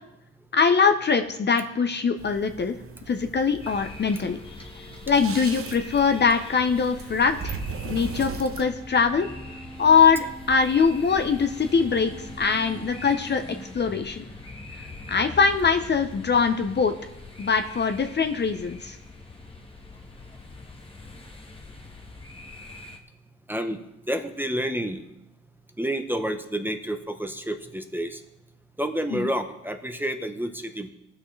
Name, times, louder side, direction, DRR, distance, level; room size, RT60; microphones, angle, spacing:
voice 1, 0.5-2.7 3.1-4.4 5.1-7.6 7.8-9.3 9.8-13.4 13.7-14.3 15.1-16.9 17.4-19.0 29.1-29.3, left 5 dB, 35° left, 8 dB, 0.7 m, -22 dB
sound 1, 2.2-8.7, right 6 dB, 45° right, 0.9 m, -39 dB
sound 2, 3.6-23.0, left 3 dB, 20° left, 1.3 m, -43 dB
sound 3, 8.0-14.1, right 3 dB, 30° right, 1.8 m, -45 dB
voice 2, 24.1-25.0 25.8-28.2 28.8-30.9, right 1 dB, 5° right, 6 dB, 0.8 m, -29 dB
19.0 x 6.4 x 3.2 m, 0.87 s
cardioid pair, 90°, 30 cm